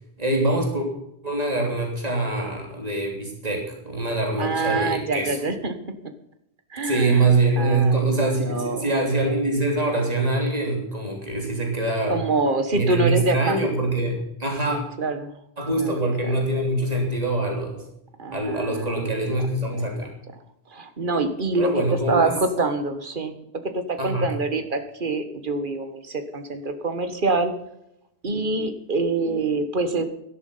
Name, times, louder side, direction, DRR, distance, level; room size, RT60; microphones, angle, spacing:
voice 1, 0.2-0.9 1.2-5.4 6.8-12.2 12.7-14.8 15.6-17.8 18.3-20.1 21.6-22.3 24.0-24.3, right 2 dB, 40° right, 1 dB, 3.3 m, -24 dB
voice 2, 4.4-5.7 6.7-7.3 7.6-8.9 12.1-13.6 14.7-15.4 15.8-16.4 18.2-19.4 19.7-19.9 20.7-23.4 23.6-27.5 28.2-30.0, right 3 dB, 55° right, 8 dB, 1.6 m, -26 dB
13.0 x 11.0 x 5.6 m, 0.81 s
omnidirectional pair, 1.1 m